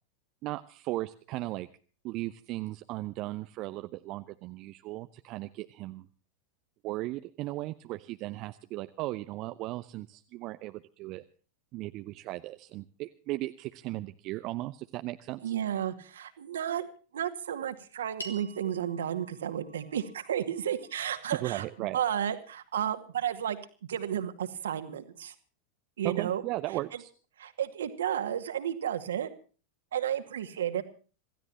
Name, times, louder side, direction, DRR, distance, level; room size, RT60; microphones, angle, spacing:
voice 1, 0.4-1.7 2.0-6.1 6.8-11.2 11.7-15.5 21.4-22.0 26.0-27.1, right 18 dB, 40° right, 10 dB, 0.8 m, -36 dB
voice 2, 15.4-16.9 17.1-23.6 23.9-25.3 26.0-26.4 26.9-27.0 27.4-29.3 29.9-30.8, right 10 dB, 65° right, 8 dB, 2.2 m, -32 dB
sound 1, 18.2-22.7, right 1 dB, 80° left, 3.3 m, -50 dB
27.0 x 16.0 x 2.9 m, 0.39 s
figure-of-eight pair, 90°, 0 cm